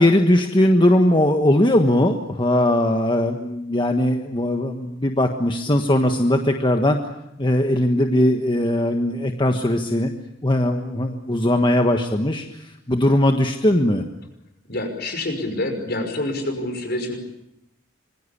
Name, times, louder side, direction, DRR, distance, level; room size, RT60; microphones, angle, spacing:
voice 1, 0.0-7.0 7.4-10.1 10.4-14.0, left 1 dB, 25° left, 4 dB, 1.5 m, -19 dB
voice 2, 14.7-17.2, left 1 dB, 55° left, 5 dB, 5.8 m, -27 dB
26.0 x 22.5 x 8.5 m, 0.83 s
head